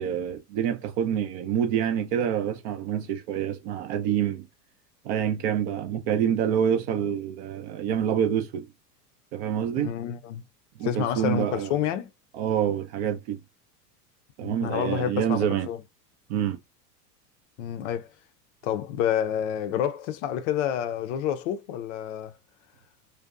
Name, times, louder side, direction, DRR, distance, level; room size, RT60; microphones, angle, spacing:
voice 1, 0.0-4.5 5.0-8.7 9.3-9.9 10.8-11.7 12.3-13.4 14.4-15.7 16.3-16.6, right 9 dB, 45° right, 0.5 m, -27 dB
voice 2, 9.8-10.4 10.8-12.1 14.4-15.8 17.6-18.1 18.6-22.4, left 9 dB, 50° left, 0.5 m, -29 dB
2.6 x 2.1 x 2.3 m
hypercardioid pair, 95°, 48 cm